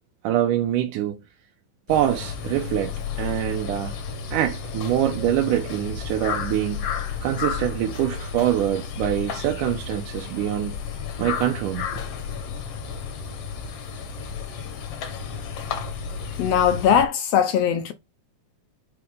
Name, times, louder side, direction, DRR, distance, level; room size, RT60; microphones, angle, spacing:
voice 1, 0.2-1.2 1.9-4.0 4.3-6.9 7.2-10.8 11.2-12.0, right 12 dB, 85° right, 2.2 m, -24 dB
sound 1, 1.9-17.0, left 7 dB, 55° left, 2.0 m, -32 dB
voice 2, 16.4-17.9, left 8 dB, 80° left, 1.4 m, -20 dB
5.9 x 5.2 x 5.1 m
omnidirectional pair, 3.6 m